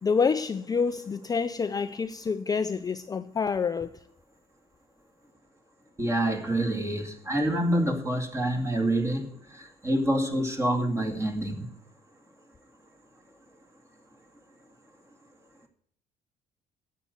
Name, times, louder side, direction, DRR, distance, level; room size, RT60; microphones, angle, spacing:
voice 1, 0.0-3.9, left 5 dB, 20° left, 0.5 m, -27 dB
voice 2, 6.0-11.7, right 1 dB, 15° right, 2.3 m, -27 dB
11.0 x 7.9 x 8.0 m
cardioid pair, 110°, 17 cm